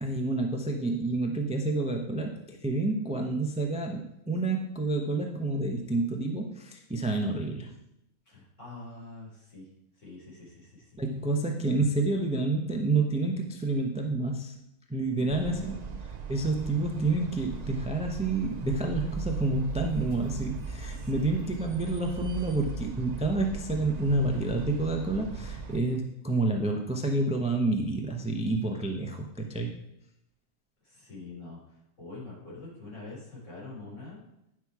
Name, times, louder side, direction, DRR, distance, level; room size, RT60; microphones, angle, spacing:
voice 1, 0.0-7.7 11.0-14.6 14.9-15.6 16.3-29.7, right 2 dB, 5° right, 2 dB, 0.5 m, -29 dB
voice 2, 8.3-9.7 10.0-11.0 15.1-16.0 20.9-21.3 30.8-31.6 32.0-34.2, left 3 dB, 55° left, -6 dB, 4.3 m, -44 dB
sound 1, 15.3-25.8, right 5 dB, 75° right, 0.3 m, -38 dB
10.0 x 6.1 x 4.7 m, 0.85 s
omnidirectional pair, 1.6 m